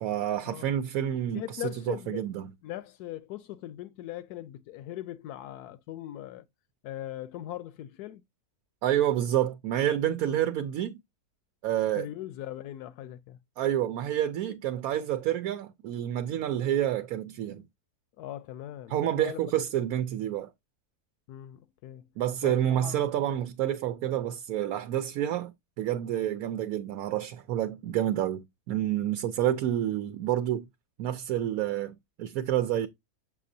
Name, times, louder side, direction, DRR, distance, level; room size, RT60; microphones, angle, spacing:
voice 1, 0.0-2.5 8.8-11.0 11.6-12.1 13.6-17.6 18.9-20.5 22.2-30.7 31.0-32.9, right 11 dB, 75° right, 1.1 m, -29 dB
voice 2, 1.3-2.2 2.6-6.5 6.8-8.2 12.0-13.4 18.2-19.5 21.3-22.1 22.4-23.1, left 13 dB, 80° left, 1.1 m, -40 dB
7.5 x 5.9 x 2.6 m
omnidirectional pair, 1.6 m